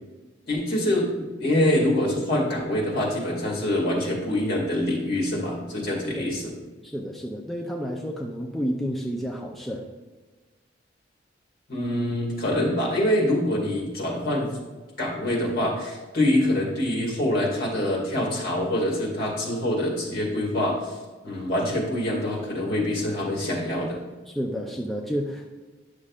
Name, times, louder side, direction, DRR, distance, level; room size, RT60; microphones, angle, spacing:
voice 1, 0.5-6.5 11.7-14.5 15.0-21.0 21.2-24.0, left 1 dB, 55° left, -1 dB, 2.2 m, -25 dB
voice 2, 6.8-9.8 24.3-25.5, equal, ahead, -2 dB, 0.5 m, -30 dB
9.8 x 6.4 x 2.4 m, 1.3 s
head